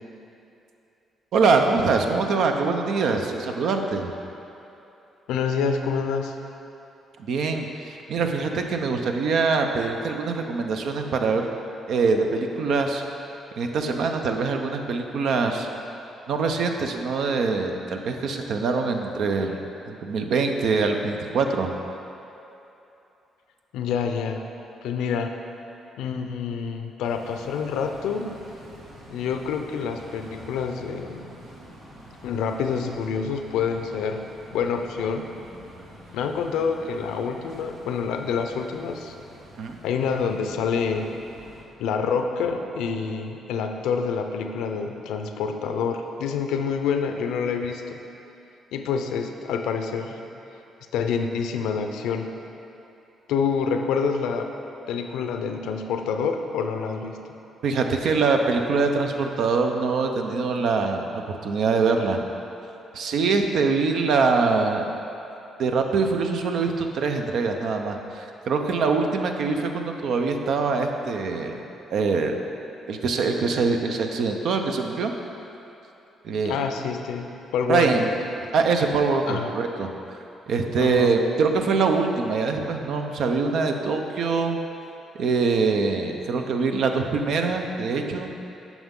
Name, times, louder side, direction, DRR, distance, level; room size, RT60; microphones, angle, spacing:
voice 1, 1.3-4.1 7.2-11.5 11.9-13.0 13.6-15.7 16.3-21.7 39.6-39.8 57.6-62.2 62.9-64.9 65.6-71.6 71.9-72.3 72.9-75.1 76.2-76.6 77.7-78.1 78.5-79.9 80.5-84.6 85.2-88.3, right 4 dB, 70° right, 4 dB, 0.6 m, -24 dB
voice 2, 5.3-6.4 23.7-24.5 24.8-25.5 26.0-28.4 29.1-31.3 32.2-34.2 34.5-35.3 36.1-39.1 39.8-41.1 41.8-48.0 48.7-50.2 50.9-52.3 53.3-54.5 54.9-57.2 76.4-78.1 79.3-79.5 80.8-81.1, left 6 dB, 90° left, 5 dB, 0.5 m, -27 dB
sound 1, 27.0-41.6, equal, 85° right, 1.8 m, -47 dB
9.1 x 6.0 x 3.7 m, 2.9 s
cardioid pair, 90°, 0 cm